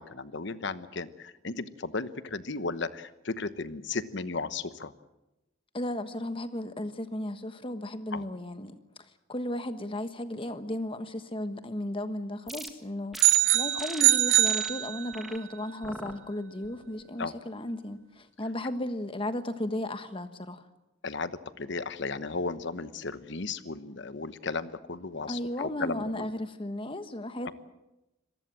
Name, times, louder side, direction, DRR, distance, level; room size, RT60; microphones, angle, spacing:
voice 1, 0.0-4.9 8.1-8.3 17.2-17.3 21.0-26.3 27.4-27.5, left 3 dB, 60° left, 13 dB, 1.1 m, -35 dB
voice 2, 5.7-8.7 9.3-13.2 13.5-20.6 25.3-27.5, left 1 dB, 25° left, 10 dB, 1.3 m, -35 dB
sound 1, 12.5-12.7 13.1-13.4 13.8-14.0 14.4-14.7 15.1-15.4 15.8-16.1 16.6-17.0, equal, ahead, 1.6 m, -42 dB
sound 2, 13.2-15.4, right 14 dB, 75° right, 1.0 m, -23 dB
26.0 x 19.5 x 7.6 m, 0.96 s
head